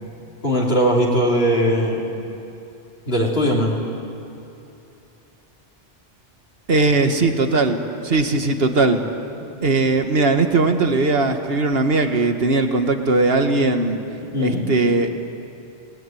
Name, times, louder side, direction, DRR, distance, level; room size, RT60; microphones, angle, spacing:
voice 1, 0.4-2.1 3.1-3.8 14.3-14.7, equal, 60° left, -4 dB, 3.5 m, -19 dB
voice 2, 6.7-9.0 9.6-14.0 14.4-15.1, right 3 dB, 60° right, 6 dB, 1.9 m, -19 dB
28.5 x 20.0 x 9.3 m, 2.8 s
omnidirectional pair, 1.2 m